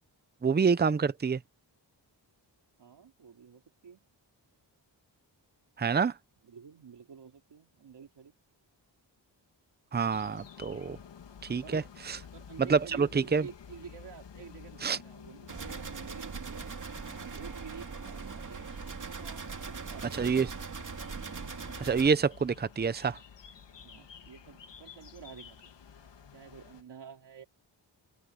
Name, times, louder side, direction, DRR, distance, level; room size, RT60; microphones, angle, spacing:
voice 1, 0.4-1.4 5.8-6.1 9.9-11.0 11.4-11.8 12.7-13.4 14.8-15.0 20.2-20.5 21.8-23.2, right 5 dB, 25° right, 0.6 m, -27 dB
voice 2, 2.8-4.0 6.4-8.3 11.6-11.9 12.3-18.7 19.0-20.3 23.8-25.6 26.3-27.5, right 6 dB, 70° right, 3.1 m, -49 dB
sound 1, 10.1-26.8, left 7 dB, 75° left, 2.2 m, -52 dB
sound 2, 15.5-22.1, right 5 dB, 45° right, 2.6 m, -40 dB
wide cardioid pair, 140°, 43 cm